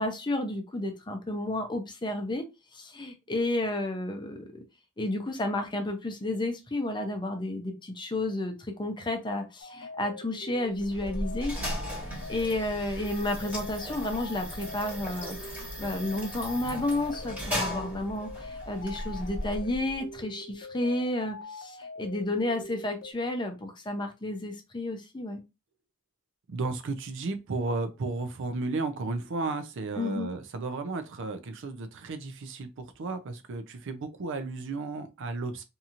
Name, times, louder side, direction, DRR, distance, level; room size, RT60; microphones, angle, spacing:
voice 1, 0.0-2.4 2.7-4.6 5.0-8.5 8.8-11.5 12.0-25.4 29.9-30.3, left 1 dB, 20° left, 0.6 m, -31 dB
sound 1, 9.6-23.1, left 2 dB, 60° left, 0.7 m, -44 dB
sound 2, 10.8-20.1, equal, 5° right, 1.4 m, -37 dB
voice 2, 26.5-35.6, right 3 dB, 60° right, 0.5 m, -33 dB
2.8 x 2.7 x 2.4 m
head